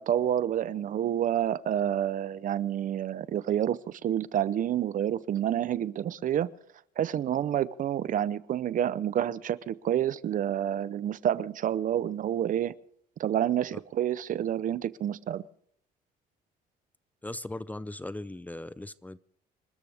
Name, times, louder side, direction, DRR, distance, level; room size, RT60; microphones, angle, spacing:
voice 1, 0.0-6.5 7.0-12.7 13.2-15.4, right 10 dB, 50° right, 0.7 m, -28 dB
voice 2, 17.2-19.2, left 1 dB, 10° left, 0.6 m, -38 dB
27.0 x 13.5 x 3.5 m
cardioid pair, 110°, 17 cm